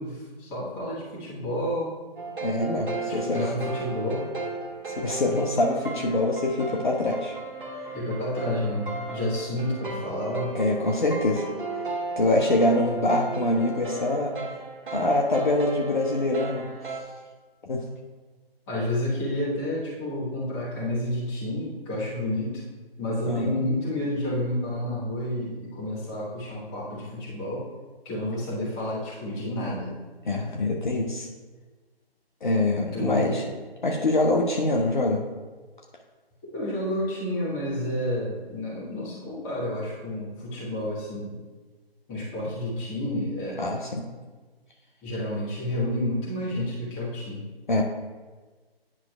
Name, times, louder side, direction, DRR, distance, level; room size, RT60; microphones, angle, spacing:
voice 1, 0.0-2.0 3.2-4.3 7.9-10.5 18.7-22.6 23.0-27.7 28.0-29.9 32.9-33.5 36.5-41.3 42.1-43.7 45.0-47.4, left 1 dB, 15° left, -8 dB, 1.2 m, -30 dB
sound 1, 2.2-17.0, right 3 dB, 55° right, 1.1 m, -35 dB
voice 2, 2.4-3.5 4.9-7.3 10.5-11.4 12.2-14.3 14.9-16.7 17.7-17.8 23.3-23.6 30.3-31.3 32.4-33.4 33.8-35.2 43.6-44.1 47.7-47.8, left 2 dB, 50° left, 0 dB, 0.7 m, -24 dB
9.8 x 5.8 x 2.3 m, 1.3 s
figure-of-eight pair, 145°, 31 cm